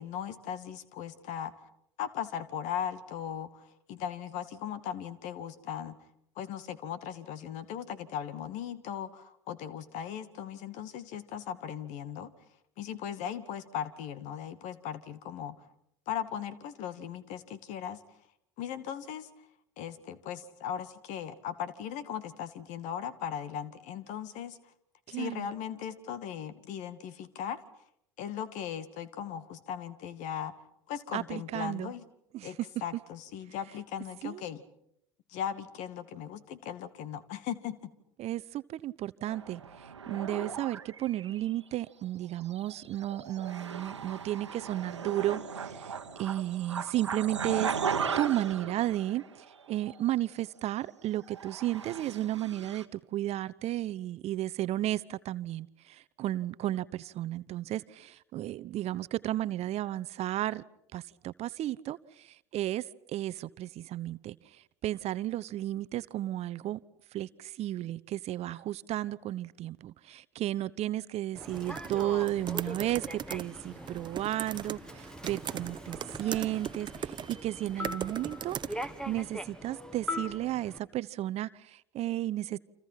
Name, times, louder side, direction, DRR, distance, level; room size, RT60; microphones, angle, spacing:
voice 1, 0.0-1.7 2.0-6.0 6.4-12.3 12.8-15.6 16.1-18.0 18.6-19.3 19.8-24.7 25.1-27.6 28.2-30.5 30.9-32.0 32.4-34.6 35.3-37.9, left 9 dB, 55° left, 2.2 m, -38 dB
voice 2, 25.1-25.5 31.1-31.9 32.3-32.5 34.2-34.4 38.2-60.6 60.9-64.4 64.8-66.8 67.1-78.6 79.1-82.6, right 14 dB, 45° right, 0.9 m, -33 dB
sound 1, 39.3-41.5 42.4-49.6 49.9-50.1 51.3-52.9, right 6 dB, 90° right, 1.4 m, -37 dB
Human voice / Subway metro underground, 71.3-80.8, left 1 dB, 5° left, 2.0 m, -42 dB
sound 2, 71.4-79.3, right 7 dB, 30° right, 1.1 m, -40 dB
29.5 x 27.0 x 5.9 m
figure-of-eight pair, 70°, 15 cm